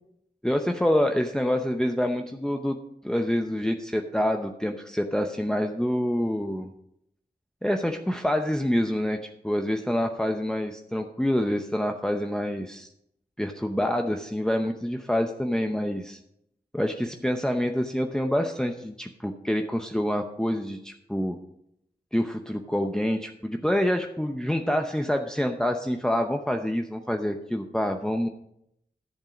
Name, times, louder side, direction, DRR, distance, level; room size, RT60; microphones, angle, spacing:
voice 1, 0.4-2.8 3.0-6.7 7.6-12.9 13.4-16.2 16.7-21.4 22.1-28.3, equal, 5° left, 4 dB, 0.7 m, -27 dB
11.0 x 7.4 x 5.1 m, 0.77 s
wide cardioid pair, 55°, 17 cm